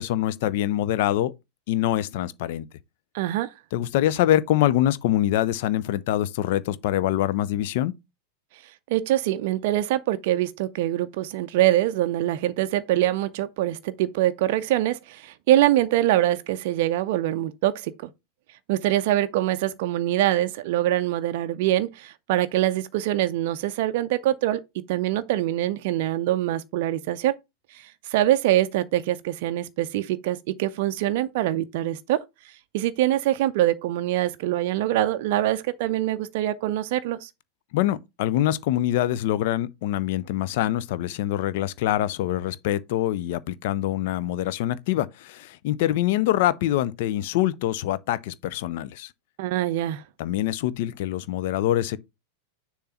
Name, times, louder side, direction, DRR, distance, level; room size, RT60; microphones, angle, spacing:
voice 1, 0.0-1.3 1.7-2.7 3.7-7.9 37.7-49.1 50.2-52.0, left 13 dB, 50° left, 0.5 m, -24 dB
voice 2, 3.1-3.5 8.9-18.1 18.7-24.6 24.9-27.4 27.7-37.3 49.4-50.0, right 14 dB, 50° right, 0.4 m, -24 dB
6.7 x 3.1 x 5.5 m
figure-of-eight pair, 90°, 0 cm